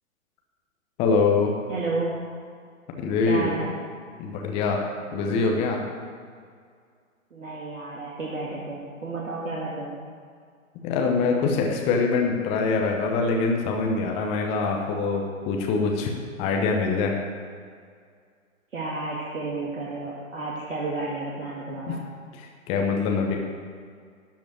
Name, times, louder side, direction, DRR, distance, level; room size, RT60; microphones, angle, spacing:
voice 1, 1.0-1.5 3.0-3.7 4.2-4.8 5.1-5.8 10.8-16.1 16.4-17.1 21.9-22.0 22.7-23.4, left 4 dB, 15° left, 2 dB, 0.9 m, -24 dB
voice 2, 1.7-2.1 3.2-3.7 5.1-5.5 7.3-10.0 18.7-22.0, right 3 dB, 70° right, -5 dB, 2.2 m, -32 dB
12.5 x 5.1 x 8.7 m, 2.1 s
figure-of-eight pair, 130°, 41 cm